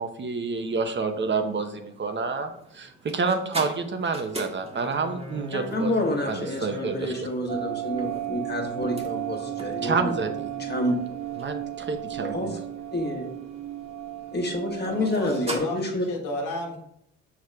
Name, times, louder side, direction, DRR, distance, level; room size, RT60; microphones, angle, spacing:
voice 1, 0.0-5.9 6.3-7.3 9.8-10.5 11.4-12.6, right 4 dB, 40° right, 6 dB, 0.8 m, -29 dB
sound 1, 0.5-15.6, right 1 dB, 20° right, 1.4 m, -42 dB
voice 2, 5.5-10.3 10.6-11.0 12.2-12.6 12.9-13.3 14.3-16.1, left 1 dB, 35° left, 2 dB, 1.5 m, -28 dB
sound 2, 7.5-15.6, right 13 dB, 80° right, 0.8 m, -34 dB
voice 3, 14.8-16.8, left 2 dB, 85° left, 1 dB, 1.4 m, -33 dB
6.2 x 4.8 x 3.5 m, 0.73 s
cardioid pair, 90°, 30 cm